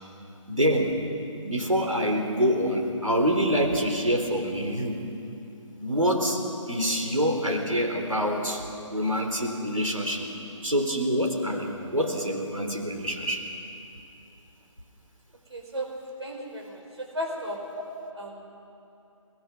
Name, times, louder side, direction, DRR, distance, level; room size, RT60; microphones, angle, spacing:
voice 1, 0.5-0.9 1.4-5.0 5.8-6.4 6.7-10.3 10.6-13.4, equal, 90° right, 2 dB, 3.8 m, -26 dB
voice 2, 15.5-15.9 16.2-17.6 18.1-18.6, equal, 55° right, 1 dB, 5.0 m, -35 dB
29.5 x 20.5 x 6.2 m, 2.8 s
figure-of-eight pair, 145°, 17 cm